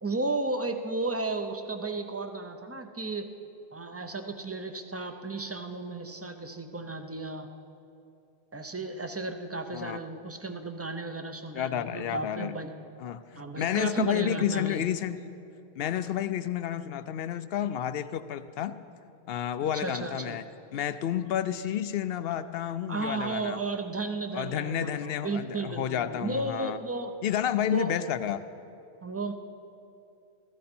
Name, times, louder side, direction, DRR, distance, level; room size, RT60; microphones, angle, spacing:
voice 1, 0.0-3.3 3.7-7.5 8.5-12.7 13.4-14.8 19.6-20.4 22.9-27.1 27.7-27.9 29.0-29.3, right 3 dB, 15° right, 6 dB, 0.5 m, -34 dB
voice 2, 11.5-12.5 13.0-15.2 15.8-18.7 19.3-20.4 20.7-23.6 24.3-26.8 27.2-28.4, left 10 dB, 65° left, 13 dB, 0.7 m, -30 dB
15.5 x 14.5 x 4.4 m, 2.7 s
omnidirectional pair, 1.1 m